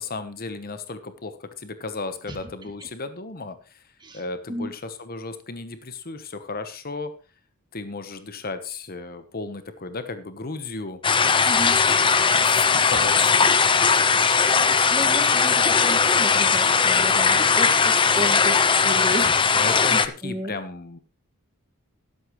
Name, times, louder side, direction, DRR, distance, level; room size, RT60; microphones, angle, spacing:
voice 1, 0.0-3.8 4.1-7.1 7.7-11.0 11.8-13.5 19.5-21.0, left 3 dB, 40° left, 10 dB, 1.1 m, -34 dB
sound 1, 11.0-20.1, left 5 dB, 20° left, 0.6 m, -19 dB
voice 2, 11.5-11.8 12.9-13.0 14.2-19.4 19.9-20.5, equal, 20° right, 4 dB, 2.0 m, -33 dB
13.0 x 11.5 x 3.2 m, 0.34 s
head